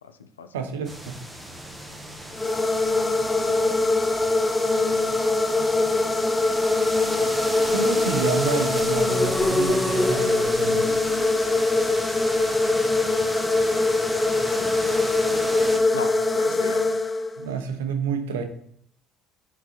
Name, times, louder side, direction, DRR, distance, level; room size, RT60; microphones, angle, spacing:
voice 1, 0.0-0.7 3.4-3.8 14.6-14.7 15.9-16.9, left 6 dB, 90° left, 9 dB, 0.4 m, -38 dB
voice 2, 0.5-1.2 7.7-10.9 17.4-18.4, right 6 dB, 80° right, 7 dB, 0.6 m, -29 dB
sound 1, 0.8-15.8, equal, 5° right, 0.9 m, -35 dB
sound 2, 2.3-17.5, left 2 dB, 20° left, 0.4 m, -22 dB
4.5 x 3.9 x 2.9 m, 0.66 s
hypercardioid pair, 60°, 0 cm